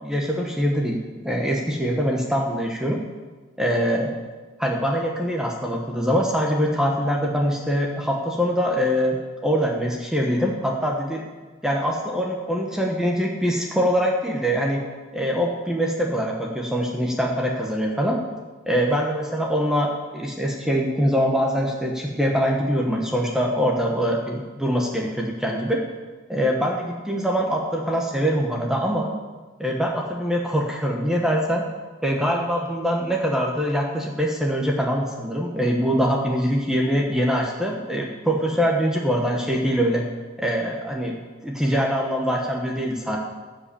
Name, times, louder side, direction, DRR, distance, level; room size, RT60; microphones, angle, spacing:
voice 1, 0.0-1.0 1.2-3.0 3.6-4.1 4.6-11.2 11.6-14.8 15.1-18.2 18.7-25.8 26.3-29.1 29.6-31.6 32.0-40.0 40.4-41.2 41.4-43.2, equal, 5° right, -1 dB, 1.0 m, -23 dB
15.0 x 5.2 x 6.9 m, 1.3 s
head